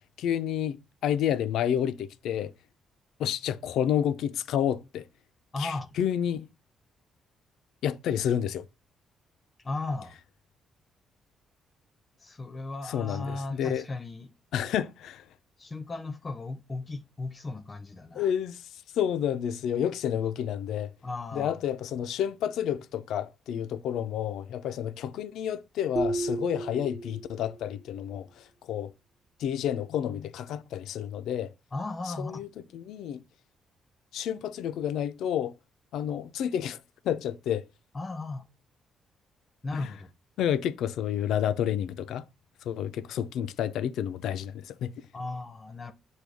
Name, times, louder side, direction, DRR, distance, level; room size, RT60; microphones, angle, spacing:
voice 1, 0.2-2.5 3.2-5.0 5.6-6.5 7.8-8.6 12.9-13.8 14.5-15.2 18.1-18.7 19.0-20.9 21.3-28.9 29.4-31.5 32.2-32.5 32.7-33.2 34.1-35.5 35.9-36.8 37.0-37.6 39.7-39.9 40.4-42.2 42.6-44.9, left 9 dB, 80° left, 0.4 m, -30 dB
voice 2, 5.5-6.0 9.6-10.2 12.2-14.3 15.6-18.3 21.0-21.6 31.7-32.5 37.9-38.5 39.6-40.1 45.1-45.9, left 2 dB, 30° left, 0.6 m, -36 dB
sound 1, 26.0-27.7, right 2 dB, 25° right, 0.4 m, -32 dB
6.1 x 2.2 x 3.4 m
cardioid pair, 90°, 0 cm